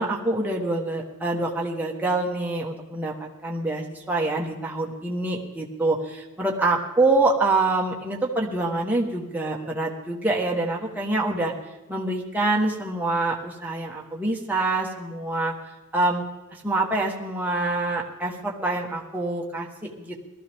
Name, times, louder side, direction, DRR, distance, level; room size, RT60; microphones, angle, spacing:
voice 1, 0.0-11.5 11.9-15.5 15.9-16.2 16.6-20.2, right 2 dB, 10° right, -2 dB, 1.3 m, -26 dB
18.5 x 13.0 x 3.6 m, 1.1 s
head